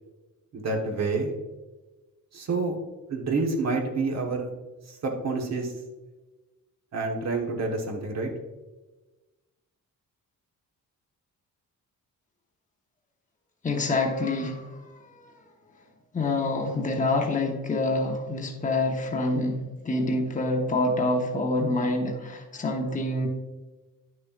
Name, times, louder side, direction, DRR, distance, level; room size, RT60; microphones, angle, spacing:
voice 1, 0.5-1.3 2.3-2.8 3.1-4.5 4.9-5.7 6.9-8.3, right 3 dB, 50° right, 2 dB, 1.1 m, -28 dB
voice 2, 13.6-15.3 16.1-23.3, left 2 dB, 20° left, 1 dB, 0.9 m, -27 dB
10.5 x 6.4 x 2.4 m, 1.2 s
wide cardioid pair, 160°, 34 cm